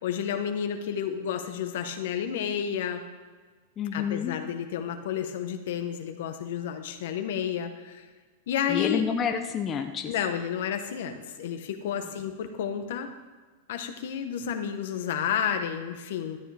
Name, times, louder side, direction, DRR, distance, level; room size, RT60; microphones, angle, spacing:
voice 1, 0.0-3.0 3.9-8.1 8.5-9.0 10.1-13.1 13.7-16.4, left 8 dB, 70° left, 7 dB, 1.1 m, -31 dB
voice 2, 3.8-4.4 8.7-10.1, left 7 dB, 25° left, 5 dB, 0.7 m, -29 dB
13.0 x 8.8 x 3.4 m, 1.3 s
hypercardioid pair, 130°, 0 cm